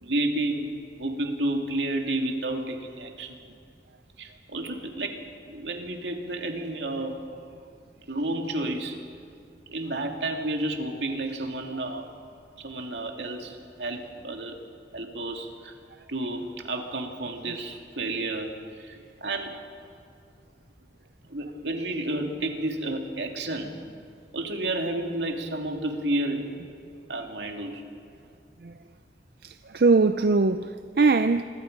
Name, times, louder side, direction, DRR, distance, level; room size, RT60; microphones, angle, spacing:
voice 1, 0.0-0.7 1.0-3.4 4.2-5.2 5.4-7.2 8.1-9.0 9.7-12.1 12.6-14.6 14.9-15.7 16.1-19.6 21.3-23.7 24.3-26.5 27.1-27.8, right 1 dB, 80° right, 2.4 m, -31 dB
voice 2, 29.4-31.4, right 3 dB, 60° right, 0.5 m, -21 dB
27.0 x 22.0 x 5.3 m
head